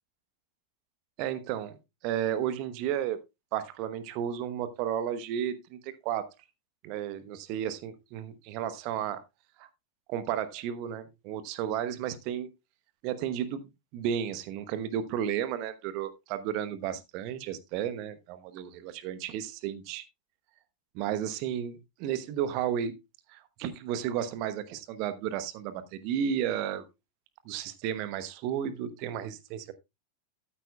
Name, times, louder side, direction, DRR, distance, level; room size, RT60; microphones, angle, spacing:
voice 1, 1.2-3.2 3.5-6.3 6.8-9.2 9.6-9.7 10.1-12.5 13.0-13.7 13.9-20.0 20.9-22.9 23.3-26.8 27.4-29.7, right 9 dB, 45° right, 1.0 m, -33 dB
13.5 x 8.6 x 2.3 m
figure-of-eight pair, 90°, 0 cm